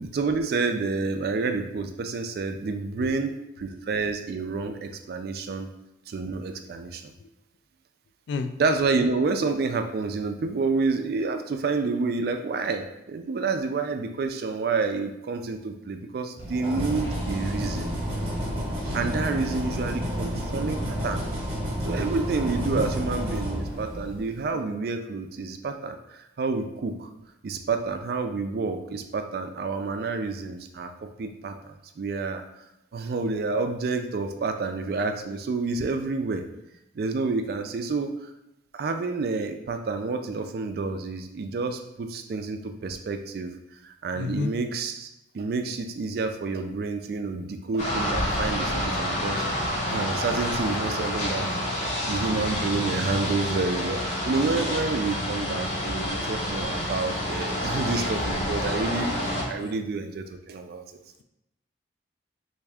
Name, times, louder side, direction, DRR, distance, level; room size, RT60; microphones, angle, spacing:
voice 1, 0.0-5.7 6.1-7.0 8.6-17.9 18.9-21.2 21.8-27.1 27.4-32.4 32.9-36.4 36.9-38.3 38.7-43.5 43.8-49.4 49.8-60.8, right 4 dB, 55° right, 7 dB, 0.3 m, -29 dB
voice 2, 3.0-3.3 7.2-7.3 8.3-8.5 22.7-22.9 44.1-44.5 59.5-59.8, left 4 dB, 75° left, 9 dB, 0.3 m, -32 dB
sound 1, 16.4-24.3, equal, 30° right, 0.9 m, -30 dB
sound 2, 17.0-23.1, right 1 dB, 15° left, 0.6 m, -43 dB
sound 3, 47.8-59.4, left 1 dB, 40° left, 0.9 m, -28 dB
3.4 x 2.6 x 3.4 m, 0.89 s
head